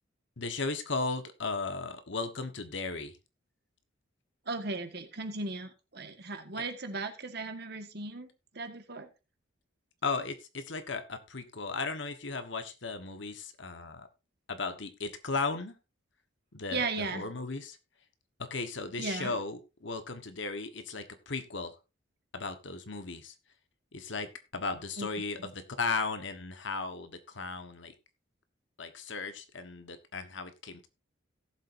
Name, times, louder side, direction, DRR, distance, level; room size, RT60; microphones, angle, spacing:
voice 1, 0.4-3.2 10.0-14.1 14.5-15.7 16.5-17.8 18.4-21.7 22.3-23.3 23.9-27.9 28.8-30.9, left 4 dB, 60° left, 9 dB, 1.3 m, -36 dB
voice 2, 4.5-8.3 8.5-9.1 16.7-17.3 19.0-19.4 25.0-25.1 25.4-25.5, right 3 dB, 55° right, 7 dB, 1.6 m, -36 dB
17.5 x 7.5 x 2.6 m, 0.27 s
head